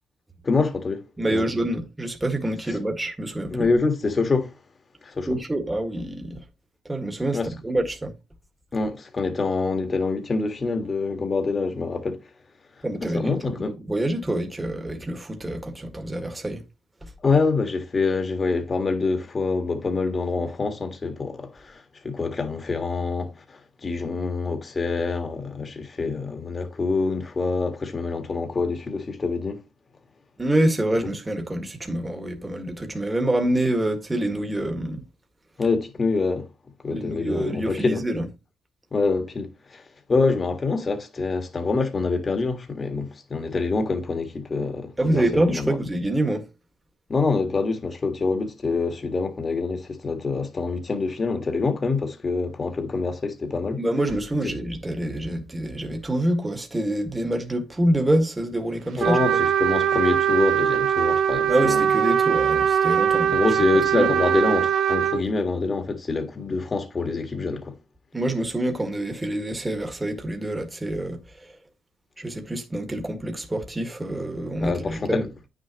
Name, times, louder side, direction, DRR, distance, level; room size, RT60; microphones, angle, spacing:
voice 1, 0.4-1.0 1.3-1.4 3.5-4.5 5.0-5.3 7.3-7.5 8.7-12.2 12.8-13.7 17.2-29.6 35.6-36.5 36.8-38.0 38.9-45.8 47.1-53.8 59.0-61.8 63.3-67.7 74.6-75.3, left 4 dB, 35° left, 1.7 m, -26 dB
voice 2, 1.2-3.6 5.3-6.4 6.8-8.1 12.8-16.6 17.0-17.1 30.4-35.0 36.9-38.3 45.0-46.5 53.8-59.4 61.5-63.3 63.9-64.1 68.1-71.5 72.2-75.2, right 1 dB, 15° right, 1.7 m, -26 dB
Trumpet, 59.0-65.2, right 9 dB, 75° right, 1.0 m, -21 dB
9.4 x 6.5 x 3.0 m
cardioid pair, 90°, 0 cm